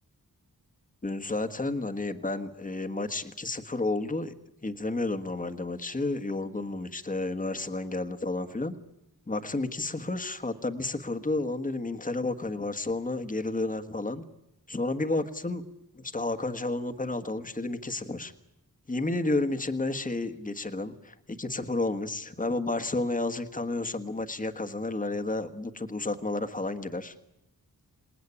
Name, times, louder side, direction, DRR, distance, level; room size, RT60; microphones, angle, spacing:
voice 1, 1.0-4.3 4.6-8.7 9.3-14.2 14.7-15.6 15.9-18.3 18.9-27.1, left 2 dB, 20° left, 7 dB, 1.5 m, -31 dB
27.5 x 19.0 x 9.9 m, 0.91 s
wide cardioid pair, 105°, 36 cm